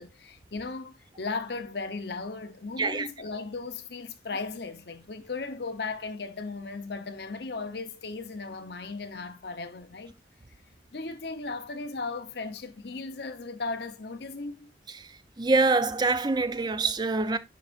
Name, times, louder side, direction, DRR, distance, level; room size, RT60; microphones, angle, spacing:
voice 1, 0.0-10.1 10.9-14.7, left 3 dB, 60° left, 0.8 m, -36 dB
voice 2, 2.8-3.1 14.9-15.1 15.4-17.4, right 3 dB, 25° right, 0.5 m, -25 dB
10.5 x 4.7 x 2.5 m
head